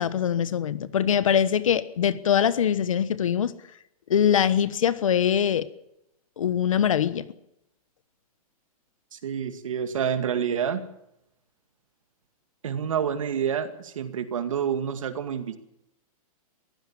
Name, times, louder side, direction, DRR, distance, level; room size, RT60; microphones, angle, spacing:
voice 1, 0.0-3.5 4.1-5.7 6.4-7.2, left 8 dB, 55° left, 1.2 m, -23 dB
voice 2, 9.1-10.8 12.6-15.6, right 8 dB, 55° right, 2.2 m, -28 dB
23.0 x 15.5 x 7.3 m
hypercardioid pair, 180°, 20 cm